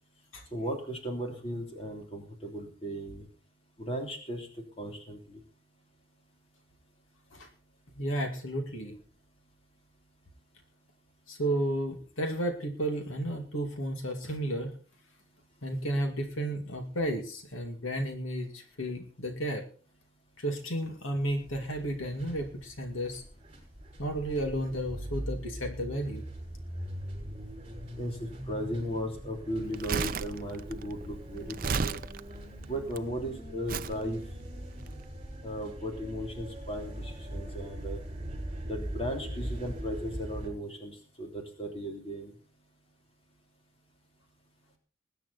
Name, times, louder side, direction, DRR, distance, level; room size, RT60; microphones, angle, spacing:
voice 1, 0.5-3.3 3.8-4.5 4.8-5.4 28.0-32.0 32.7-34.2 35.4-38.0 38.7-42.3, equal, 30° left, 2 dB, 3.3 m, -36 dB
voice 2, 8.0-8.9 11.3-14.8 15.6-19.6 20.4-23.2 24.0-26.2, right 1 dB, 80° left, 5 dB, 2.5 m, -33 dB
sound 1, 21.2-40.5, right 1 dB, 25° right, 6.1 m, -41 dB
Crumpling crinkling, 29.6-33.0 33.7-34.0 34.7-34.9, right 5 dB, 45° right, 0.5 m, -33 dB
20.5 x 9.5 x 4.2 m, 0.38 s
head